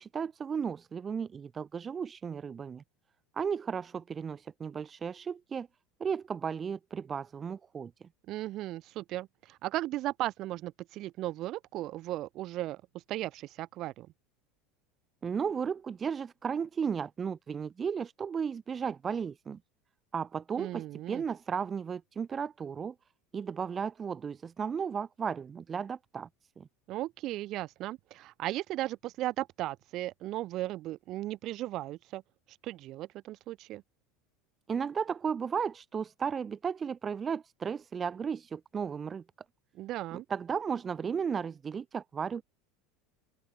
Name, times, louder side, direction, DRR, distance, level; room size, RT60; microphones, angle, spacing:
voice 1, 0.0-2.8 3.4-5.7 6.0-8.1 15.2-19.6 20.1-22.9 23.3-26.3 26.6-26.7 34.7-39.2 40.3-42.4, right 6 dB, 25° right, 0.8 m, -34 dB
voice 2, 8.3-12.8 13.1-14.1 20.6-21.2 26.9-32.2 32.5-33.8 39.7-40.3, right 15 dB, 50° right, 0.4 m, -36 dB
open air
supercardioid pair, 120°, 0 cm